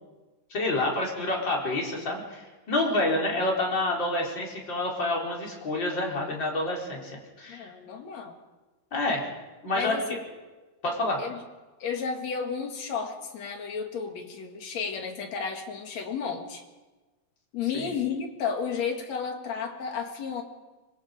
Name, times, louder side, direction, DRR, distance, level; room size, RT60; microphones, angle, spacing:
voice 1, 0.5-7.7 8.9-9.2 9.6-10.2 10.8-11.2 17.7-17.9, left 2 dB, 35° left, -2 dB, 4.7 m, -28 dB
voice 2, 2.8-3.1 7.5-8.4 9.7-10.2 11.2-11.4 11.8-16.6 17.5-20.4, left 6 dB, 60° left, 4 dB, 3.1 m, -33 dB
25.0 x 21.5 x 5.1 m, 1.2 s
omnidirectional pair, 3.7 m